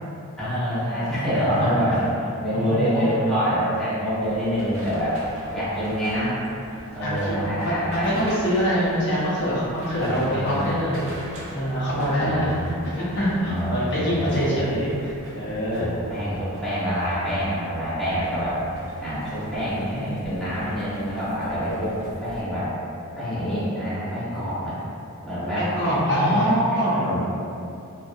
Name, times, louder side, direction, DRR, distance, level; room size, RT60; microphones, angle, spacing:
voice 1, 0.4-2.1 2.4-5.2 5.5-6.3 6.9-8.1 10.0-11.0 11.9-12.8 13.5-14.5 15.8-18.6 19.0-22.7 23.2-24.8 25.2-25.7 26.3-26.5 26.9-27.2, equal, ahead, -13 dB, 0.7 m, -26 dB
voice 2, 2.5-3.1 7.0-11.0 11.5-12.5 12.9-15.9 19.7-20.6 25.6-27.0, equal, 50° left, -8 dB, 0.5 m, -25 dB
sound 1, 4.2-22.4, right 1 dB, 60° right, 0.4 m, -42 dB
2.4 x 2.1 x 2.5 m, 2.6 s
head